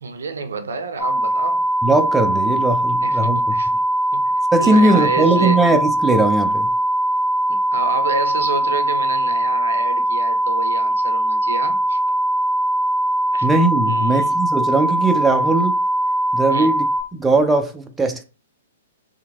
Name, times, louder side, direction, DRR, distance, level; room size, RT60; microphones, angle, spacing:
voice 1, 0.0-1.6 3.0-3.7 4.1-4.3 4.6-5.7 7.5-12.0 13.3-13.5 13.8-14.4 16.5-16.7, right 4 dB, 70° right, 0.5 m, -28 dB
sound 1, 1.0-17.0, right 1 dB, 5° left, 0.9 m, -20 dB
voice 2, 1.8-3.5 4.5-6.7 13.4-15.8 16.3-16.9 17.2-18.2, right 2 dB, 10° right, 0.3 m, -19 dB
2.7 x 2.0 x 2.8 m
figure-of-eight pair, 115°, 0 cm